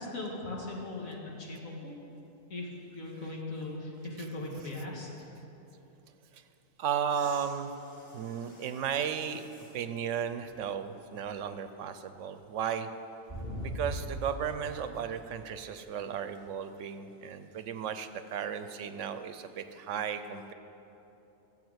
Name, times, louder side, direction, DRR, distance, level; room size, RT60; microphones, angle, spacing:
voice 1, 0.0-2.0 2.5-5.3, left 2 dB, 75° left, -2 dB, 2.3 m, -39 dB
voice 2, 6.8-7.7 8.1-9.4 9.7-12.9 13.6-20.5, right 8 dB, 70° right, 11 dB, 0.9 m, -35 dB
sound 1, 7.1-9.8 10.5-10.6 13.3-14.5 16.3-16.4, equal, 30° left, 2.6 m, -42 dB
13.5 x 7.9 x 8.0 m, 3.0 s
omnidirectional pair, 1.4 m